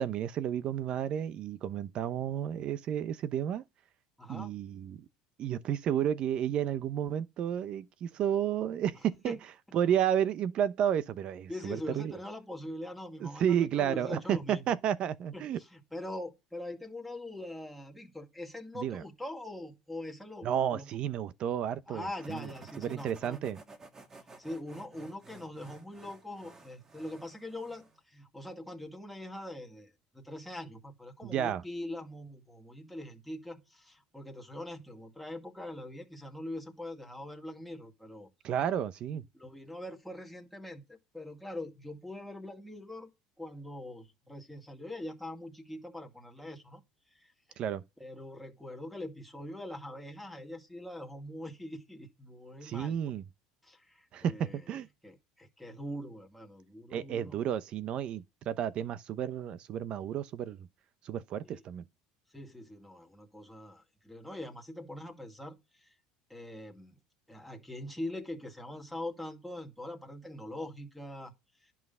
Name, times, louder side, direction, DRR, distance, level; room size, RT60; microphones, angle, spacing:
voice 1, 0.0-3.6 4.3-5.1 5.4-9.4 9.7-12.2 13.2-15.6 18.7-19.0 20.4-22.5 22.8-23.6 31.2-31.6 38.4-39.2 47.6-47.8 52.6-53.2 54.1-54.9 56.9-60.7 61.0-61.8, right 9 dB, 50° right, 0.9 m, -32 dB
voice 2, 4.2-4.5 9.2-9.4 11.5-14.6 15.3-20.9 21.9-23.5 24.4-38.3 39.3-43.1 43.4-46.8 47.1-47.3 48.0-53.0 53.6-57.4 61.4-61.6 62.3-65.9 66.3-67.0 67.3-71.3 71.6-71.7, left 1 dB, ahead, 2.2 m, -43 dB
sound 1, 22.2-28.0, right 3 dB, 25° right, 1.9 m, -53 dB
11.0 x 5.9 x 5.6 m
supercardioid pair, 100°, 2 cm